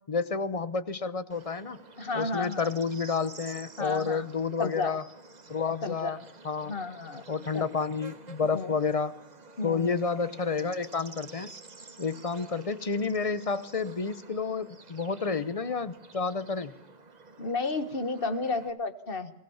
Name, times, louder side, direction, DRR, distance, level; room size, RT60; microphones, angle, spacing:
voice 1, 0.1-1.8 2.1-5.0 5.5-6.2 6.4-6.8 7.3-9.1 9.6-11.5 12.0-16.7, left 5 dB, 35° left, 15 dB, 0.9 m, -30 dB
Bird / Insect, 1.3-18.7, right 3 dB, 40° right, 1.4 m, -50 dB
voice 2, 2.0-2.7 3.8-4.2 4.6-4.9 5.8-6.2 6.6-7.2 7.5-7.7 8.5-8.8 9.6-10.0 17.4-19.3, left 3 dB, 60° left, 10 dB, 1.7 m, -32 dB
23.0 x 16.5 x 7.1 m, 0.81 s
omnidirectional pair, 1.1 m